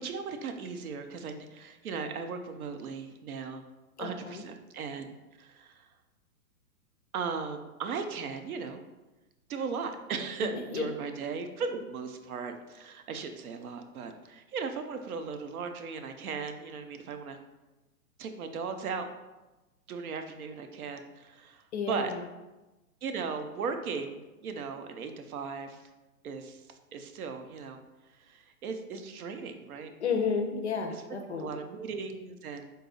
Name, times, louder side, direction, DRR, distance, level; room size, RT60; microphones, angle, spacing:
voice 1, 0.0-3.6 4.0-5.9 7.1-8.8 9.5-17.4 18.2-19.1 19.9-22.1 23.0-25.8 26.2-27.8 28.1-29.9 30.9-31.0 31.4-32.7, right 5 dB, 70° right, 7 dB, 0.6 m, -37 dB
voice 2, 4.0-4.4 10.5-10.8 21.7-22.2 30.0-31.5, left 5 dB, 50° left, 4 dB, 0.5 m, -32 dB
3.9 x 2.3 x 3.8 m, 1.1 s
hypercardioid pair, 170°, 45 cm